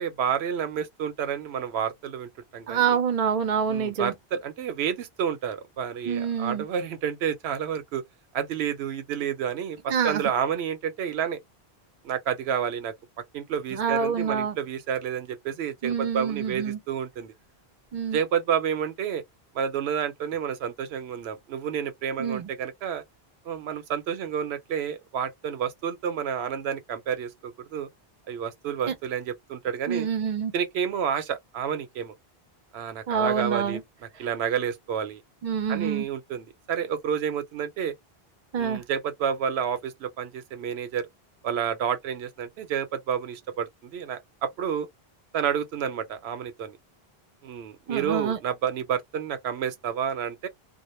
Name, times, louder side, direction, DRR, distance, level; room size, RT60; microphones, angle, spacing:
voice 1, 0.0-3.0 3.7-8.0 8.3-11.4 12.0-12.9 13.3-17.3 18.1-19.2 19.5-23.0 23.5-27.9 28.3-30.1 30.5-32.1 32.7-33.8 34.2-35.2 35.7-38.0 38.6-41.1 41.4-44.9 45.3-46.8 47.4-50.5, right 8 dB, 90° right, 0.9 m, -30 dB
voice 2, 2.7-4.1 6.1-6.7 9.9-10.3 13.7-14.5 15.8-16.8 17.9-18.2 22.2-22.5 28.9-29.0 29.9-30.5 33.1-33.8 35.4-36.1 38.5-38.8 47.9-48.4, right 7 dB, 50° right, 0.5 m, -26 dB
2.1 x 2.0 x 3.0 m
omnidirectional pair, 1.0 m